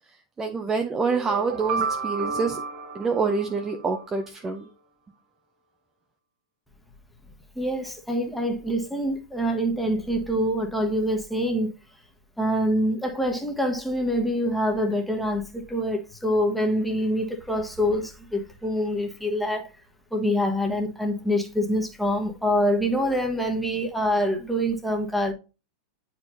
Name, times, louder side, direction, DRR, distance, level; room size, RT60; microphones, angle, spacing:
voice 1, 0.4-2.6 2.9-4.7, right 4 dB, 15° right, 0.7 m, -26 dB
sound 1, 1.0-4.1, right 5 dB, 45° right, 1.1 m, -32 dB
voice 2, 7.5-11.7 12.4-19.7 20.1-25.3, equal, ahead, 1.3 m, -25 dB
9.4 x 4.4 x 2.7 m
figure-of-eight pair, 95°, 2 cm